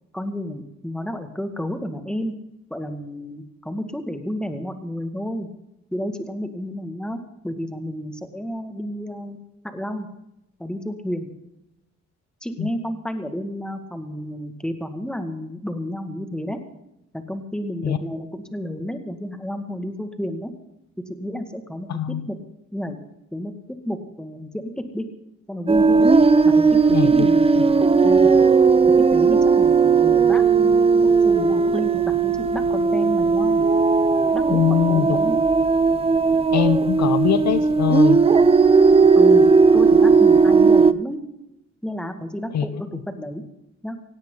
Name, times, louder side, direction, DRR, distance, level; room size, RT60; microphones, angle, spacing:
voice 1, 0.1-2.3 2.7-5.5 5.9-7.2 7.4-9.4 9.6-10.1 10.6-11.3 12.4-16.6 17.1-20.5 21.1-22.4 22.7-23.0 23.3-25.1 25.5-26.1 26.4-28.4 29.0-33.7 34.3-35.4 39.1-39.5 39.7-41.2 41.8-43.4 43.8-44.0, equal, 5° left, 6 dB, 2.1 m, -31 dB
voice 2, 21.9-22.2 26.9-27.3 27.5-27.6 34.5-35.1 36.5-38.2 42.5-42.6, left 10 dB, 65° left, 12 dB, 1.0 m, -22 dB
sound 1, 25.7-40.9, right 4 dB, 20° right, 0.7 m, -16 dB
17.5 x 17.0 x 4.0 m, 0.85 s
cardioid pair, 90°, 30 cm